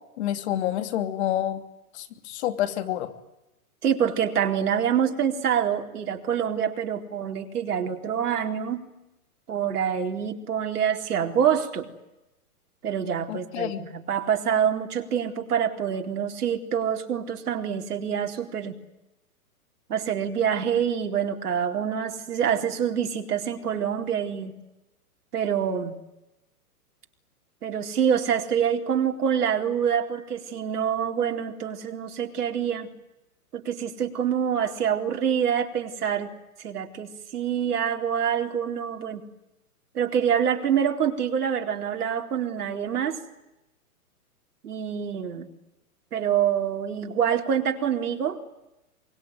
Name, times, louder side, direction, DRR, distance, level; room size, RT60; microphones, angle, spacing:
voice 1, 0.2-1.6 1.9-3.1 13.3-13.8, left 12 dB, 45° left, 9 dB, 2.9 m, -28 dB
voice 2, 3.8-8.9 9.5-11.9 12.8-18.8 19.9-24.5 25.3-26.0 27.6-32.9 33.5-36.3 36.6-39.2 39.9-43.2 44.6-45.5 46.1-48.4, right 8 dB, 80° right, 4 dB, 4.1 m, -26 dB
24.5 x 24.0 x 9.5 m, 0.95 s
hypercardioid pair, 155°, 45 cm